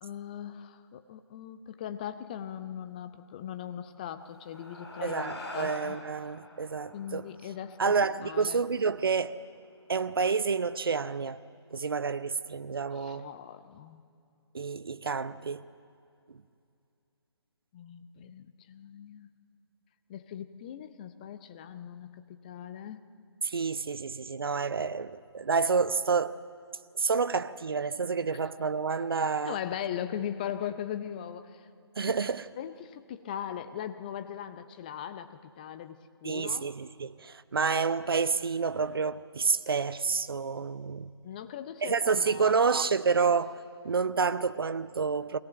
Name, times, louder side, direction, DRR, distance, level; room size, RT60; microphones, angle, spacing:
voice 1, 0.0-6.0 6.9-8.0 8.2-8.6 12.9-14.0 17.7-19.3 20.1-23.0 29.4-31.7 32.1-32.2 32.6-36.7 41.2-42.6, left 10 dB, 20° left, 0.6 m, -39 dB
sound 1, 4.2-8.8, left 1 dB, 65° left, 5.6 m, -45 dB
voice 2, 5.0-7.3 7.8-9.4 9.9-11.4 11.7-13.3 14.5-15.6 16.3-16.4 23.4-26.4 26.9-29.6 32.0-32.5 36.2-41.1 41.8-45.4, right 5 dB, 55° right, 0.7 m, -29 dB
21.5 x 17.0 x 7.8 m
figure-of-eight pair, 145°, 14 cm